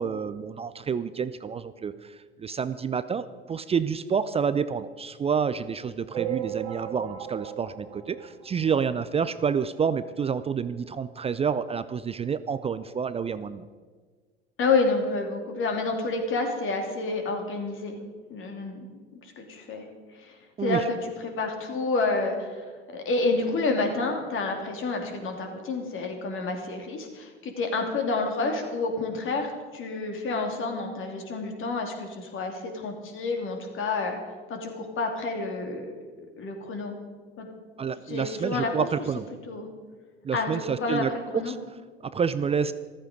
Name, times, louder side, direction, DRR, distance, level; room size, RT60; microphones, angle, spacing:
voice 1, 0.0-13.6 20.6-20.8 37.8-39.3 40.2-41.6 42.0-42.7, right 6 dB, 20° right, 14 dB, 0.5 m, -28 dB
sound 1, 6.1-9.0 9.5-9.6 9.7-9.9 10.2-10.3 11.2-11.3 11.7-11.8, right 10 dB, 75° right, 1.9 m, -36 dB
voice 2, 14.6-18.0 18.3-18.9 19.1-19.9 20.2-20.3 20.6-22.6 22.9-34.2 34.5-35.9 36.4-36.9 37.4-37.5 38.1-38.9 39.5-39.7 40.3-41.1 41.3-41.5, left 3 dB, 40° left, 3 dB, 2.9 m, -29 dB
14.0 x 14.0 x 5.2 m, 1.5 s
figure-of-eight pair, 70°, 32 cm